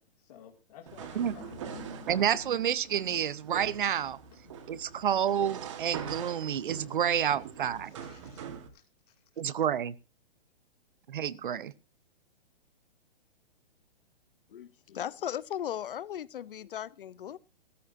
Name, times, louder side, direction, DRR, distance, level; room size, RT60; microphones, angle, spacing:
voice 1, 0.0-2.6 3.1-3.2 4.3-5.0 7.4-7.6 7.8-8.4 8.7-9.1, left 9 dB, 40° left, 2.4 m, -52 dB
sound 1, 0.9-8.7, right 7 dB, 30° right, 1.5 m, -43 dB
voice 2, 2.1-4.2 4.7-7.9 9.4-9.9 11.1-11.7, right 9 dB, 55° right, 0.8 m, -29 dB
voice 3, 14.5-17.4, left 10 dB, 60° left, 0.7 m, -37 dB
16.0 x 14.0 x 2.7 m
hypercardioid pair, 175°, 30 cm